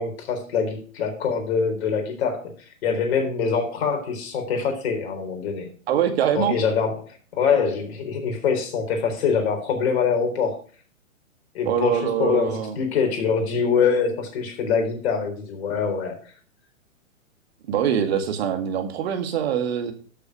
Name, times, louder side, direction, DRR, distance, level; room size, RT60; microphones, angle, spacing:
voice 1, 0.0-5.7 6.3-10.6 11.5-16.2, left 6 dB, 50° left, 4 dB, 4.1 m, -24 dB
voice 2, 5.9-6.6 11.6-12.7 17.7-19.9, right 9 dB, 50° right, 6 dB, 2.1 m, -23 dB
13.0 x 6.8 x 4.9 m, 0.41 s
hypercardioid pair, 125°, 41 cm